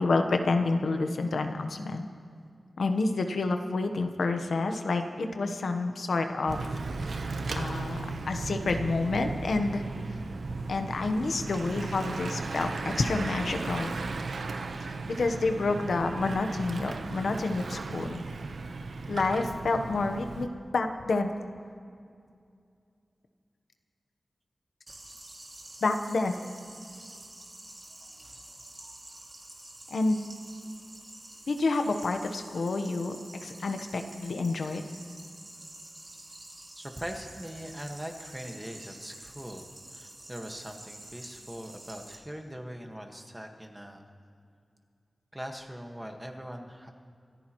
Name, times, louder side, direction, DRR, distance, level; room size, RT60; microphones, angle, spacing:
voice 1, 0.0-2.1 2.8-6.8 7.5-8.0 8.3-9.8 10.7-13.9 15.2-18.2 19.1-20.5 20.7-21.3 25.8-26.4 29.9-30.2 31.5-33.2 33.4-34.8, left 3 dB, 85° left, 6 dB, 1.0 m, -28 dB
Bicycle / Mechanisms, 6.5-20.5, right 3 dB, 85° right, 0.9 m, -36 dB
sound 1, 24.9-42.1, right 1 dB, 35° right, 2.4 m, -48 dB
voice 2, 36.7-39.7 39.9-44.1 45.3-46.9, equal, 10° right, 3 dB, 1.6 m, -41 dB
26.5 x 14.5 x 3.1 m, 2.3 s
wide cardioid pair, 110°, 0 cm